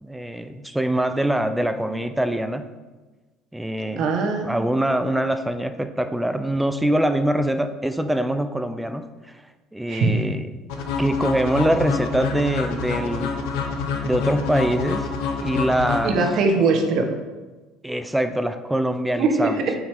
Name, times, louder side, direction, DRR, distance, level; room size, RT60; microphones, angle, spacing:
voice 1, 0.0-2.7 3.5-4.1 4.4-9.4 9.7-10.5 11.0-13.4 14.0-15.1 15.4-16.2 17.8-19.6, right 1 dB, 5° right, 9 dB, 0.4 m, -24 dB
voice 2, 4.0-4.5 9.9-10.1 16.0-17.1 19.2-19.7, right 4 dB, 55° right, 3 dB, 1.1 m, -21 dB
sound 1, 10.7-16.7, left 5 dB, 85° left, 0.9 m, -27 dB
8.1 x 5.1 x 3.6 m, 1.2 s
cardioid pair, 130°, 0 cm